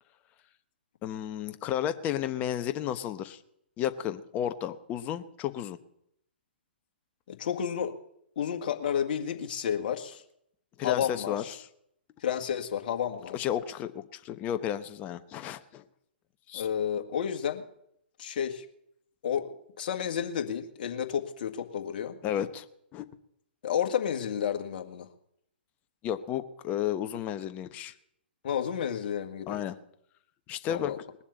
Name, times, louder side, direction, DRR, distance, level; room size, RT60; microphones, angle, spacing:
voice 1, 1.0-3.4 3.8-5.8 10.8-11.7 13.3-15.8 16.5-16.7 22.2-22.6 22.9-23.1 26.0-27.9 29.5-29.8 30.5-30.9, left 10 dB, 25° left, 10 dB, 1.1 m, -32 dB
voice 2, 7.3-7.9 8.4-10.2 10.8-11.4 12.2-13.4 16.5-17.6 18.2-18.7 19.2-19.5 19.8-22.2 23.6-25.1 28.4-29.6 30.7-31.0, left 8 dB, 55° left, 5 dB, 1.9 m, -31 dB
20.0 x 7.2 x 8.4 m, 0.74 s
hypercardioid pair, 125°, 6 cm